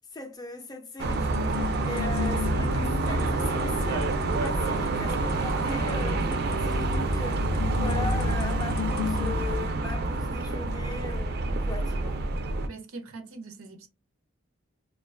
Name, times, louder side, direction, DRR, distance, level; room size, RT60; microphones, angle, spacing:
voice 1, 0.1-1.3 1.7-7.5 7.8-12.2, left 3 dB, 20° left, 0.4 m, -39 dB
sound 1, 1.0-12.7, right 2 dB, 50° right, 0.4 m, -27 dB
sound 2, 1.1-9.3, left 5 dB, 75° left, 0.5 m, -35 dB
voice 2, 12.7-13.9, right 3 dB, 90° right, 0.6 m, -42 dB
2.4 x 2.2 x 2.4 m
head